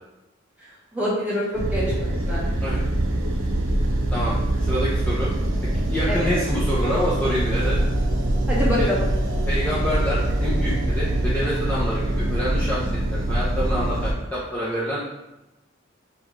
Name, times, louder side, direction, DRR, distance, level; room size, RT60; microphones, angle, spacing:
voice 1, 0.9-2.5 6.1-6.4 8.5-9.1, equal, 10° right, -7 dB, 1.3 m, -26 dB
sound 1, 1.5-14.1, right 1 dB, 90° right, 0.6 m, -23 dB
voice 2, 4.1-5.3 5.7-7.8 8.8-8.9 9.5-15.0, equal, 10° left, -9 dB, 0.6 m, -27 dB
5.3 x 2.3 x 3.2 m, 0.97 s
head